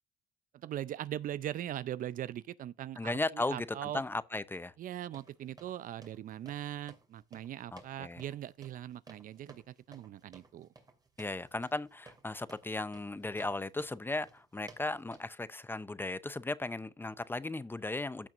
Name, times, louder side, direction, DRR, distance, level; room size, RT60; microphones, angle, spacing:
voice 1, 0.5-4.0 4.8-10.7, right 12 dB, 55° right, 0.5 m, -40 dB
voice 2, 3.0-4.7 7.7-8.2 11.2-18.3, left 2 dB, 10° left, 0.6 m, -36 dB
sound 1, 5.1-15.2, right 3 dB, 20° right, 2.6 m, -58 dB
15.0 x 5.9 x 2.5 m
cardioid pair, 110°, 17 cm